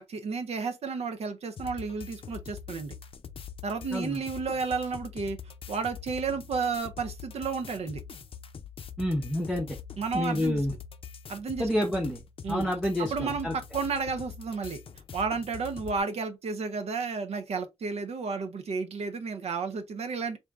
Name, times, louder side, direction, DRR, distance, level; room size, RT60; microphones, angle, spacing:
voice 1, 0.0-2.9 3.6-5.4 5.7-8.0 10.0-10.6 11.3-11.7 12.4-12.7 13.0-14.8 15.1-20.4, right 5 dB, 70° right, 0.6 m, -32 dB
sound 1, 1.6-16.0, left 7 dB, 55° left, 0.5 m, -44 dB
voice 2, 9.0-9.8 10.1-10.7 11.6-12.2 12.5-13.5, left 1 dB, ahead, 0.7 m, -28 dB
3.5 x 2.6 x 3.4 m
wide cardioid pair, 165°, 11 cm